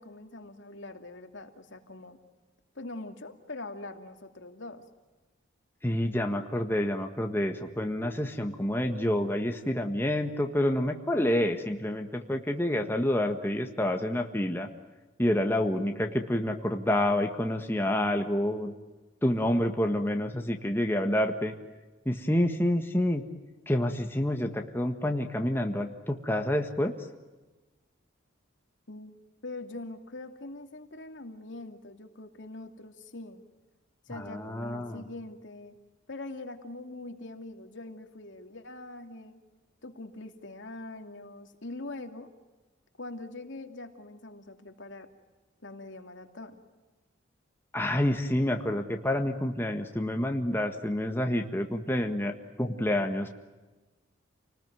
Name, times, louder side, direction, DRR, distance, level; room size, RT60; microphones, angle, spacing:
voice 1, 0.0-2.2 2.7-4.8 28.9-29.2 29.4-33.4 34.1-35.7 36.1-39.4 39.8-42.3 43.0-45.1 45.6-46.6, left 2 dB, 65° left, 6 dB, 2.6 m, -43 dB
voice 2, 5.8-14.7 15.2-18.7 19.2-21.5 22.0-23.3 23.7-26.9 34.1-35.0 47.7-53.3, left 1 dB, 10° left, 4 dB, 1.6 m, -28 dB
29.0 x 19.5 x 9.3 m, 1.2 s
head